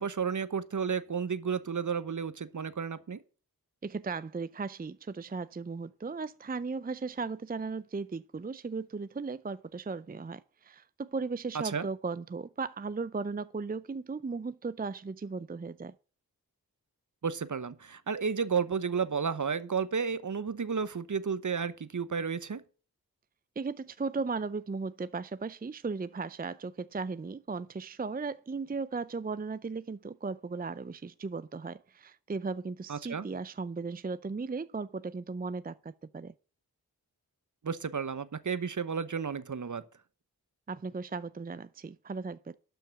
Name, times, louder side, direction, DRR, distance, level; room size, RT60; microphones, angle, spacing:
voice 1, 0.0-3.2 11.6-11.9 17.2-22.6 32.9-33.3 37.6-39.8, right 6 dB, 50° right, 1.0 m, -32 dB
voice 2, 3.8-15.9 23.6-36.3 40.7-42.6, right 4 dB, 25° right, 0.5 m, -36 dB
12.0 x 5.9 x 5.9 m
cardioid pair, 50°, 38 cm